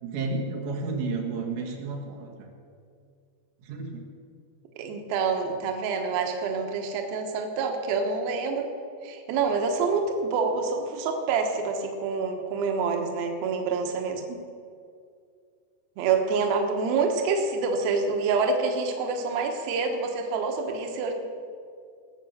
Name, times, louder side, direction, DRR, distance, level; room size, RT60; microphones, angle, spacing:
voice 1, 0.0-2.5 3.6-4.0 14.3-14.4, right 3 dB, 90° right, 0 dB, 3.9 m, -32 dB
voice 2, 4.8-8.7 9.0-14.2 16.0-21.1, right 4 dB, 70° right, 3 dB, 2.8 m, -27 dB
19.5 x 7.4 x 6.7 m, 2.3 s
omnidirectional pair, 4.9 m